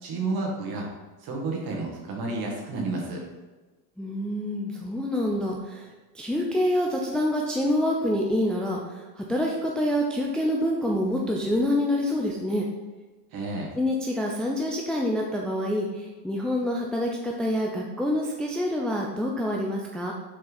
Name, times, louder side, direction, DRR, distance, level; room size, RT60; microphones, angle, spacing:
voice 1, 0.0-0.9 1.2-3.2 13.3-13.7, right 3 dB, 45° right, -1 dB, 2.1 m, -31 dB
voice 2, 4.0-5.9 6.1-12.7 13.8-20.1, left 1 dB, ahead, -2 dB, 0.6 m, -26 dB
6.5 x 4.4 x 4.1 m, 1.2 s
supercardioid pair, 105°, 50 cm